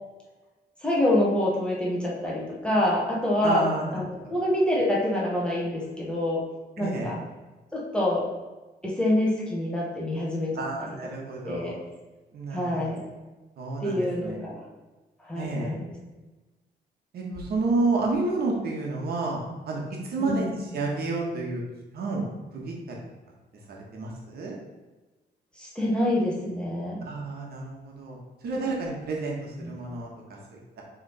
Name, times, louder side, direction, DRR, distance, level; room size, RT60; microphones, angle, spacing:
voice 1, 0.8-6.4 6.8-7.2 7.7-8.2 8.8-10.5 11.4-11.8 12.5-13.0 13.8-14.6 15.2-15.9 20.2-20.8 25.6-27.0 29.6-29.8, left 1 dB, 5° left, -5 dB, 1.2 m, -26 dB
voice 2, 3.4-3.9 6.8-7.1 10.5-11.8 12.3-12.8 13.6-14.4 15.3-15.8 17.1-21.6 21.9-22.2 22.5-22.9 23.9-24.5 27.0-28.2 28.4-30.8, right 3 dB, 65° right, -2 dB, 1.5 m, -30 dB
6.4 x 3.6 x 5.5 m, 1.2 s
wide cardioid pair, 165°, 17 cm